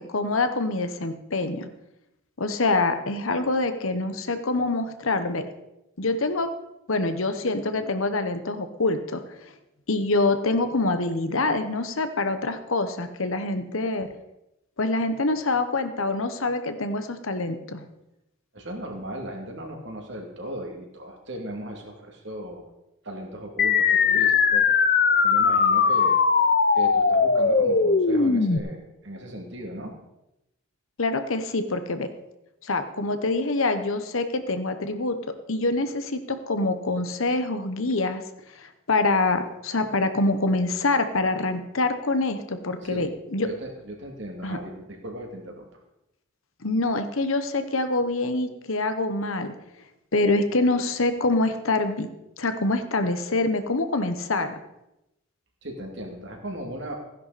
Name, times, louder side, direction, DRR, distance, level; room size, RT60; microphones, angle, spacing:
voice 1, 0.0-1.7 2.4-5.4 6.0-6.5 6.9-9.3 9.9-14.1 14.8-17.8 31.0-32.1 32.6-35.2 35.5-38.2 38.6-43.5 44.4-44.6 46.6-49.5 50.1-52.1 52.4-54.5, left 2 dB, 70° left, 9 dB, 1.1 m, -25 dB
voice 2, 18.5-22.6 23.0-24.7 25.2-26.2 26.7-29.9 42.8-43.1 43.4-45.7 55.6-57.0, right 1 dB, 55° right, 1 dB, 2.6 m, -37 dB
sound 1, 23.6-28.6, left 5 dB, 45° left, 0.7 m, -20 dB
15.5 x 10.5 x 4.2 m, 0.89 s
head